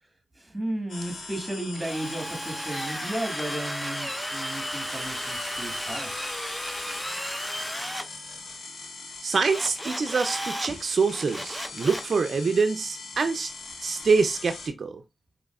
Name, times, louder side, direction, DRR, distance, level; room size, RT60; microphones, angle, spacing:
voice 1, 0.4-6.1, right 1 dB, 15° right, 1.9 m, -34 dB
sound 1, 0.9-14.7, left 3 dB, 80° left, 1.3 m, -41 dB
Drill, 1.7-8.1 9.5-10.7 11.1-12.1, equal, 5° left, 0.6 m, -34 dB
voice 2, 9.2-13.5 13.8-15.0, right 4 dB, 65° right, 0.4 m, -25 dB
4.9 x 3.0 x 2.3 m
cardioid pair, 60°, 0 cm